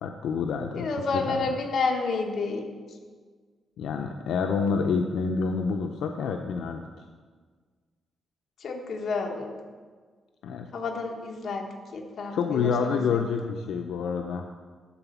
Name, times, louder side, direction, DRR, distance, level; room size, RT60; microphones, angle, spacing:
voice 1, 0.0-0.9 1.1-1.4 3.8-7.0 10.4-10.7 12.3-14.5, left 5 dB, 80° left, 4 dB, 0.5 m, -28 dB
voice 2, 0.8-2.7 8.6-9.5 10.7-13.4, left 4 dB, 50° left, 2 dB, 1.2 m, -30 dB
11.0 x 4.2 x 7.0 m, 1.5 s
cardioid pair, 155°, 0 cm